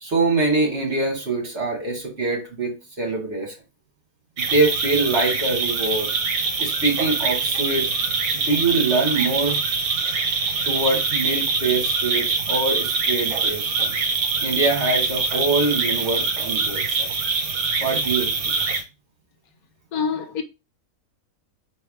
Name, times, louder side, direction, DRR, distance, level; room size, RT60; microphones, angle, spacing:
voice 1, 0.0-3.5 4.4-6.1 6.6-7.9 8.3-9.6 10.6-13.9 14.4-17.1 17.8-18.5, right 3 dB, 45° right, 1.8 m, -24 dB
sound 1, 4.4-18.8, right 4 dB, 70° right, 1.3 m, -24 dB
voice 2, 19.9-20.4, left 6 dB, 75° left, 1.2 m, -25 dB
4.5 x 3.2 x 3.4 m
omnidirectional pair, 1.6 m